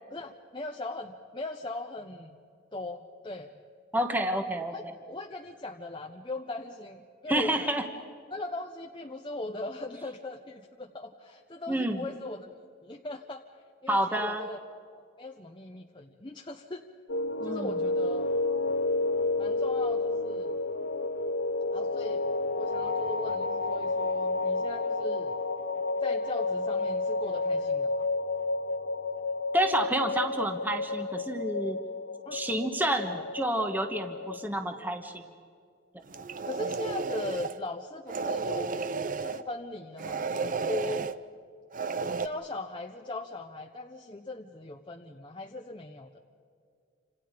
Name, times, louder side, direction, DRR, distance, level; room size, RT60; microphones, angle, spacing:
voice 1, 0.1-2.4 2.7-3.5 4.7-4.8 5.1-7.6 8.3-12.5 12.8-13.4 13.8-14.6 15.2-16.8 17.4-18.5 19.4-20.6 21.7-22.2 22.5-25.4 26.0-28.0 32.3-32.4 33.1-33.3 36.4-38.9 39.2-41.1 42.2-46.2, left 2 dB, 25° left, 2 dB, 0.9 m, -39 dB
voice 2, 3.9-4.7 7.3-7.8 11.7-12.0 13.9-14.4 17.4-17.8 29.5-31.8 32.3-35.2, right 1 dB, 10° right, 5 dB, 1.3 m, -29 dB
sound 1, 17.1-34.4, left 3 dB, 75° left, 1.2 m, -31 dB
sound 2, 36.1-37.6 38.1-39.4 40.0-41.2 41.7-42.3, right 4 dB, 40° right, 0.7 m, -32 dB
29.5 x 27.0 x 5.2 m, 2.4 s
head